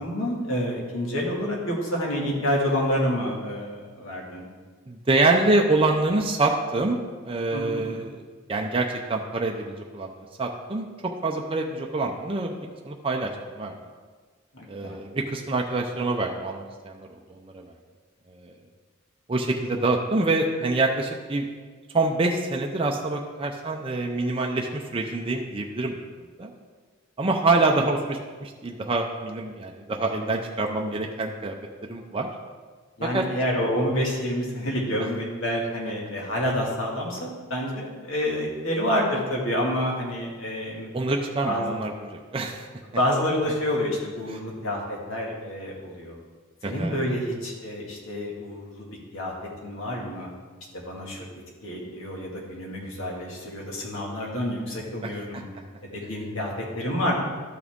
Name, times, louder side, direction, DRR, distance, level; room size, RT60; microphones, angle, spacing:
voice 1, 0.0-4.5 7.5-8.0 14.5-15.0 33.0-40.9 41.4-41.7 43.0-46.2 46.6-48.9 49.1-49.3 49.6-50.3 50.7-51.2 51.6-55.5 55.9-57.1, equal, 65° left, -2 dB, 2.0 m, -28 dB
voice 2, 4.9-7.0 7.2-8.2 8.5-13.7 14.7-17.6 18.3-18.5 19.3-21.5 21.9-26.0 26.4-26.5 27.2-31.5 31.9-32.3 33.0-33.3 40.9-42.7 44.3-44.4 46.6-46.9 55.0-55.4, right 2 dB, 25° right, 1 dB, 0.6 m, -26 dB
12.5 x 6.2 x 3.6 m, 1.5 s
head